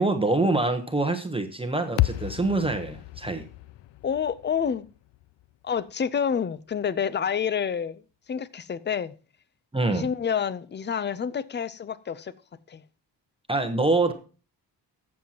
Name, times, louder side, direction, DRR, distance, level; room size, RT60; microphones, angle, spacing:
voice 1, 0.0-3.5 9.7-10.1 13.5-14.1, right 2 dB, 10° right, 1.0 m, -25 dB
sound 1, 2.0-6.3, left 16 dB, 70° left, 0.5 m, -32 dB
voice 2, 4.0-4.9 5.6-8.0 8.3-9.1 9.9-12.3 12.7-12.8, left 7 dB, 25° left, 0.5 m, -28 dB
13.5 x 7.5 x 2.9 m
cardioid pair, 100°, 43 cm